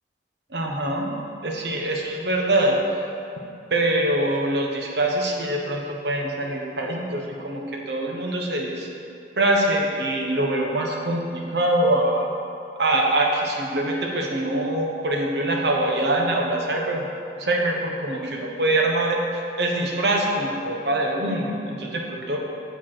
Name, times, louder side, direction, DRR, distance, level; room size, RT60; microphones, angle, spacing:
voice 1, 0.5-1.1 1.4-2.8 3.7-8.9 9.4-12.3 12.8-17.1 17.4-22.4, right 1 dB, 65° right, 0 dB, 1.1 m, -24 dB
7.4 x 6.9 x 4.5 m, 2.6 s
head